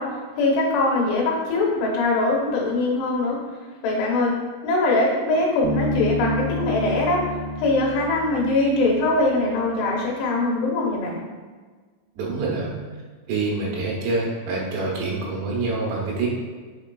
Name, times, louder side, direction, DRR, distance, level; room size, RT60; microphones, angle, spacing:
voice 1, 0.0-3.4 3.8-4.3 4.6-7.2 7.6-11.2 12.5-12.8, left 2 dB, 85° left, -3 dB, 3.0 m, -22 dB
Bass guitar, 5.6-9.3, left 2 dB, 70° right, 1.2 m, -29 dB
voice 2, 12.2-12.7 13.3-16.3, right 3 dB, 90° right, -3 dB, 3.0 m, -26 dB
6.8 x 3.2 x 2.2 m, 1.4 s
omnidirectional pair, 4.6 m